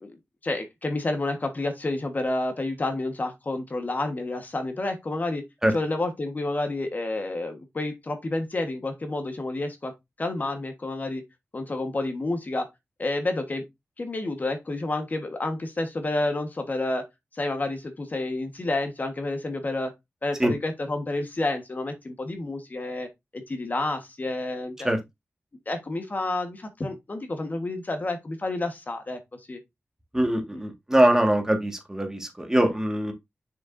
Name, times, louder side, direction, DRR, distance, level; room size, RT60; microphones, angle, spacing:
voice 1, 0.4-5.4 5.7-9.9 10.2-11.2 11.5-12.7 13.0-13.6 14.0-17.0 17.3-19.9 20.2-23.1 23.3-24.9 25.7-29.6 30.5-30.6, left 2 dB, 40° left, 1.3 m, -29 dB
voice 2, 30.1-33.1, right 1 dB, 10° right, 1.7 m, -22 dB
7.0 x 6.4 x 2.6 m
wide cardioid pair, 95°, 5 cm